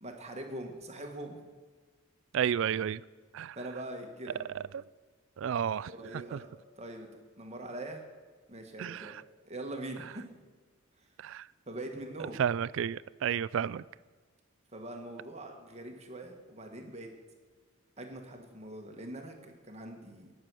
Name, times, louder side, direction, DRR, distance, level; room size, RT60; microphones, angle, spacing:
voice 1, 0.0-1.5 3.5-4.5 5.7-6.5 6.8-8.0 8.5-10.3 11.0-11.1 11.7-12.4 14.7-17.1 18.0-20.3, right 1 dB, 30° right, 3 dB, 1.5 m, -43 dB
voice 2, 2.3-3.0 3.3-3.6 5.4-5.9 8.8-9.1 11.2-11.4 12.4-13.8, right 8 dB, 60° right, 21 dB, 0.3 m, -31 dB
18.0 x 6.9 x 6.2 m, 1.4 s
head